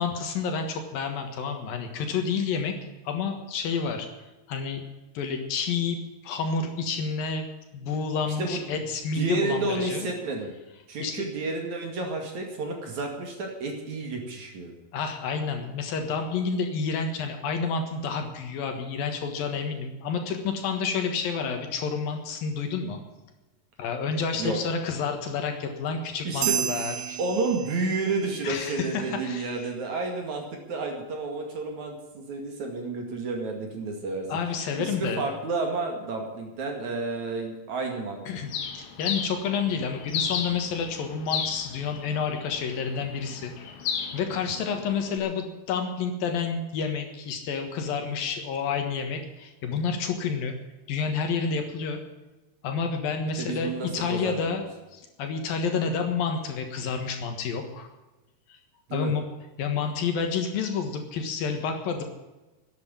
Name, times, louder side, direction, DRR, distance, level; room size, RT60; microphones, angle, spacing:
voice 1, 0.0-4.1 4.5-4.9 5.1-6.0 6.2-7.5 7.7-10.1 11.0-11.2 14.9-23.0 23.8-27.2 28.4-29.5 34.3-35.3 38.3-43.5 44.1-50.5 50.9-52.0 52.6-54.6 54.9-57.9 58.9-59.3 59.6-62.0, left 5 dB, 65° left, 5 dB, 3.1 m, -29 dB
voice 2, 8.3-8.8 9.1-10.5 10.9-14.7 24.4-24.6 26.2-26.5 27.2-34.3 34.8-38.2 53.4-54.7 58.9-59.1, right 3 dB, 50° right, 3 dB, 3.2 m, -31 dB
sound 1, 26.4-28.3, right 10 dB, 80° right, 2.8 m, -31 dB
Bird, 38.5-45.2, left 7 dB, 90° left, 3.7 m, -35 dB
11.5 x 9.8 x 9.8 m, 1.1 s
omnidirectional pair, 4.6 m